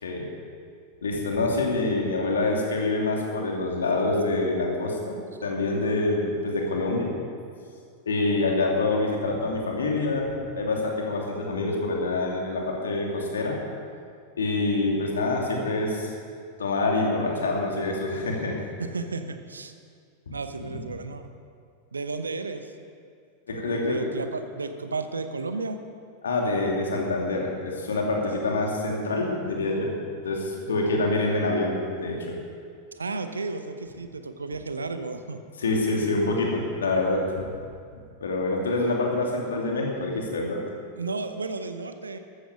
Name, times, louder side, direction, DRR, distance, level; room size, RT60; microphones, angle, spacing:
voice 1, 1.0-7.1 8.1-13.6 14.3-16.1 16.6-18.6 20.3-20.4 23.5-24.1 26.2-30.0 30.2-32.4 35.6-37.5 38.2-40.6, left 2 dB, 70° left, 0 dB, 2.7 m, -26 dB
voice 2, 18.8-19.7 20.3-21.3 21.9-22.7 23.5-25.8 32.9-35.4 41.0-42.2, right 3 dB, 75° right, 9 dB, 0.9 m, -33 dB
14.0 x 13.5 x 5.2 m, 2.3 s
figure-of-eight pair, 90°, 0 cm